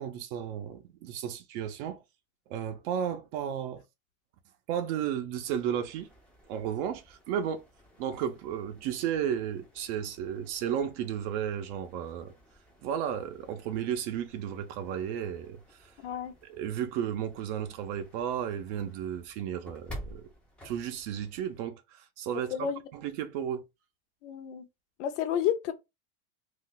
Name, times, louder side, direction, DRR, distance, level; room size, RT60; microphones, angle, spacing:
voice 1, 0.0-2.0 2.5-3.8 4.7-6.1 6.5-7.6 8.0-12.3 12.8-15.9 16.5-20.3 20.6-23.6, right 9 dB, 55° right, 0.6 m, -33 dB
sound 1, 5.4-21.7, equal, 5° left, 0.4 m, -52 dB
voice 2, 16.0-16.3 22.5-22.8 24.2-24.7 25.0-25.7, left 9 dB, 60° left, 0.7 m, -30 dB
2.4 x 2.2 x 3.7 m
supercardioid pair, 140°, 42 cm